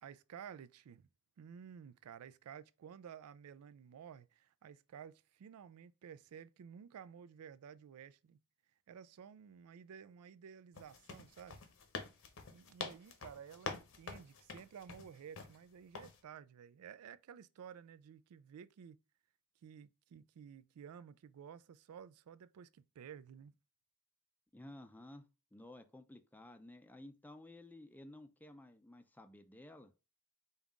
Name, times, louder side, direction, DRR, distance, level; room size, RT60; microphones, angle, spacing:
voice 1, 0.0-1.1 1.4-8.4 8.9-11.6 12.5-19.0 19.6-23.5, right 7 dB, 80° right, 0.3 m, -53 dB
sound 1, 10.7-15.6 15.9-16.2, left 4 dB, 65° left, 0.8 m, -47 dB
voice 2, 24.5-29.9, left 1 dB, 10° left, 0.4 m, -54 dB
5.4 x 2.4 x 3.6 m
head